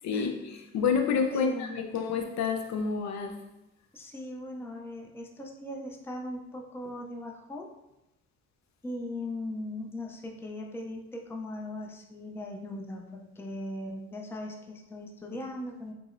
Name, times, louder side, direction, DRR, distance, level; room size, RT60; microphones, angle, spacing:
voice 1, 0.0-3.4, left 5 dB, 65° left, 4 dB, 0.5 m, -29 dB
voice 2, 1.3-1.8 3.9-7.7 8.8-15.9, left 1 dB, 10° left, 1 dB, 0.4 m, -39 dB
4.6 x 2.0 x 2.5 m, 0.90 s
cardioid pair, 90°, 30 cm